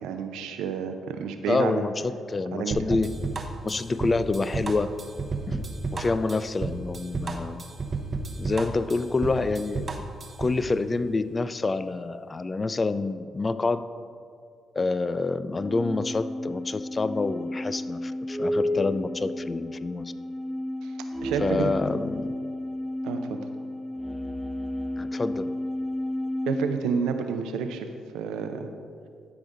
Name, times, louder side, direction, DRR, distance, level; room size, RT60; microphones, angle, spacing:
voice 1, 0.0-1.8 2.5-2.8 20.8-20.9 21.2-21.7 23.0-23.4 26.5-27.9 28.1-28.7, right 6 dB, 85° right, 7 dB, 0.6 m, -29 dB
voice 2, 1.5-3.1 3.6-5.0 5.5-5.6 5.9-7.6 8.4-9.9 10.4-13.8 14.8-20.1 21.4-22.3 25.0-25.5, left 3 dB, 35° left, 13 dB, 0.4 m, -27 dB
sound 1, 2.7-10.6, right 4 dB, 40° right, 0.8 m, -32 dB
sound 2, 15.5-26.7, left 1 dB, ahead, 1.0 m, -32 dB
12.0 x 5.0 x 3.9 m, 2.3 s
supercardioid pair, 60°, 0 cm